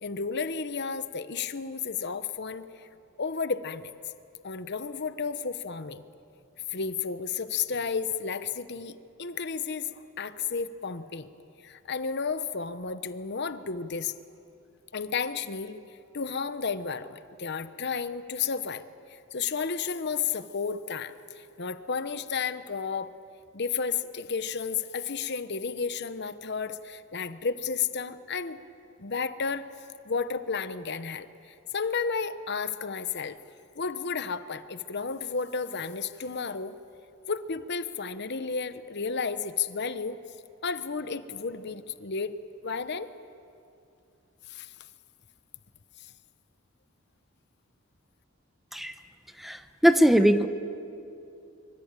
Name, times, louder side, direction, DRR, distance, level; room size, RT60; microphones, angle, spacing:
voice 1, 0.0-2.9 3.2-3.9 4.4-6.0 6.7-11.3 11.6-14.1 14.9-15.8 16.1-18.8 19.1-23.1 23.5-28.6 29.0-29.7 30.0-33.4 33.7-36.7 37.3-40.2 40.6-42.4 42.6-43.1 44.5-44.7, left 5 dB, 55° left, 12 dB, 1.0 m, -32 dB
voice 2, 49.4-50.5, equal, ahead, 9 dB, 0.9 m, -21 dB
25.0 x 24.5 x 9.0 m, 2.6 s
head